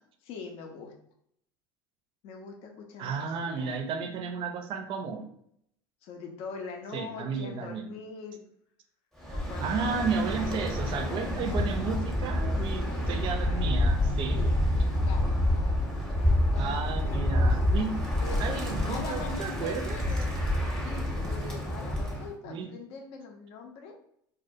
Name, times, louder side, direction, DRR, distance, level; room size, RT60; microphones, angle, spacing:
voice 1, 0.2-0.9 2.2-3.8 6.0-8.4 9.3-9.9 10.4-10.6 12.5-13.3 14.3-15.6 15.9-17.9 18.2-20.4 20.8-24.0, left 5 dB, 55° left, 3 dB, 0.5 m, -43 dB
voice 2, 3.0-5.3 6.9-8.0 9.6-14.4 16.5-18.1 18.4-20.0 22.4-22.7, right 5 dB, 45° right, 5 dB, 0.4 m, -33 dB
Bird, 9.2-22.3, left 1 dB, 5° left, 0.7 m, -28 dB
2.2 x 2.1 x 2.6 m, 0.71 s
hypercardioid pair, 80°, 12 cm